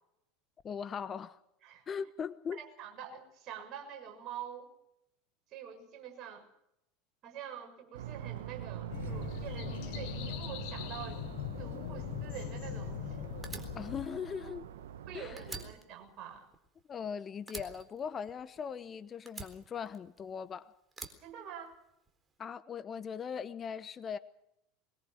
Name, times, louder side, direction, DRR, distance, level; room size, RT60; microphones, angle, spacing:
voice 1, 0.6-1.4 1.9-2.6 13.7-14.7 15.1-15.6 16.9-20.7 22.4-24.2, left 7 dB, 30° left, 14 dB, 1.0 m, -40 dB
voice 2, 2.5-4.7 5.5-6.5 7.2-11.2 11.6-13.2 15.1-16.5 21.2-21.8, right 9 dB, 45° right, 3 dB, 6.6 m, -46 dB
sound 1, 7.9-15.7, right 10 dB, 70° right, 1.1 m, -44 dB
sound 2, 8.9-14.1, left 13 dB, 55° left, 1.2 m, -41 dB
Fire, 13.4-15.1 15.4-17.1 17.5-18.8 19.3-20.4 20.9-22.1, right 4 dB, 20° right, 3.9 m, -47 dB
23.0 x 21.0 x 6.5 m, 0.80 s
figure-of-eight pair, 75°, 0 cm